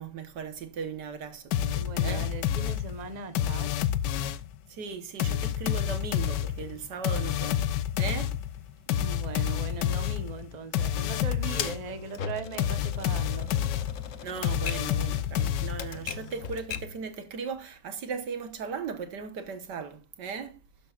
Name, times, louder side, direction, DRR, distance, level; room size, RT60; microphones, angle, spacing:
voice 1, 0.0-2.3 4.7-7.7 8.0-8.4 14.2-20.6, right 6 dB, 70° right, 1.8 m, -37 dB
sound 1, 1.5-4.6 5.2-11.9 12.6-16.1, left 10 dB, 75° left, 1.3 m, -29 dB
voice 2, 1.7-3.9 9.0-13.6, right 4 dB, 30° right, 1.0 m, -39 dB
Typewriter, 11.6-17.0, left 6 dB, 55° left, 1.2 m, -39 dB
12.5 x 10.5 x 2.4 m
omnidirectional pair, 1.9 m